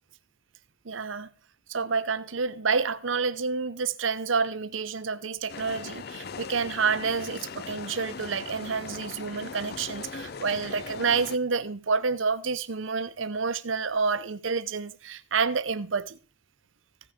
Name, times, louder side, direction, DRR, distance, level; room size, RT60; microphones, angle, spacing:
voice 1, 0.8-1.3 1.7-16.2, right 5 dB, 75° right, 0.8 m, -29 dB
sound 1, 5.5-11.4, left 5 dB, 50° left, 0.5 m, -40 dB
15.0 x 6.4 x 5.0 m
head